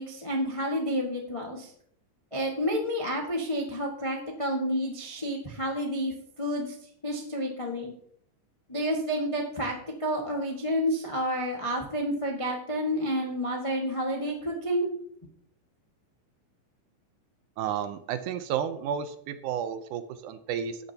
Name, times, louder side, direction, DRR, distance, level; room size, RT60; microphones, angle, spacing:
voice 1, 0.0-1.7 2.3-6.7 7.0-7.9 8.7-9.7 10.0-14.9, equal, 30° left, 0 dB, 0.6 m, -30 dB
voice 2, 17.6-20.8, right 8 dB, 75° right, 10 dB, 2.1 m, -32 dB
13.0 x 9.9 x 2.9 m, 0.66 s
omnidirectional pair, 3.7 m